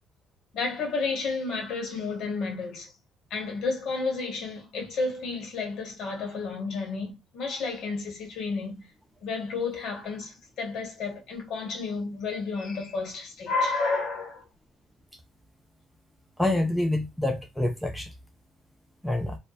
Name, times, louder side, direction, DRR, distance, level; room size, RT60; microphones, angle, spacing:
voice 1, 0.5-2.9 3.3-8.9 9.2-14.5, left 4 dB, 60° left, 1.0 m, -31 dB
voice 2, 16.4-18.1 19.0-19.4, left 1 dB, ahead, 0.3 m, -27 dB
2.6 x 2.1 x 2.3 m
cardioid pair, 165°, 0 cm